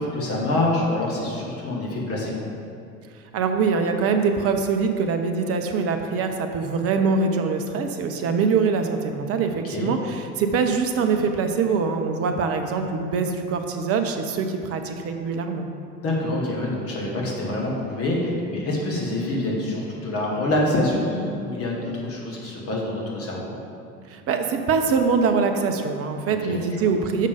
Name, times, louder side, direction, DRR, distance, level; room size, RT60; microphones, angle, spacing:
voice 1, 0.0-2.3 9.6-9.9 16.0-23.5 26.3-26.9, left 1 dB, 30° left, -3 dB, 1.5 m, -26 dB
voice 2, 3.3-15.7 24.1-27.3, right 5 dB, 35° right, 5 dB, 0.7 m, -23 dB
6.5 x 5.3 x 5.0 m, 2.5 s
figure-of-eight pair, 70°, 43 cm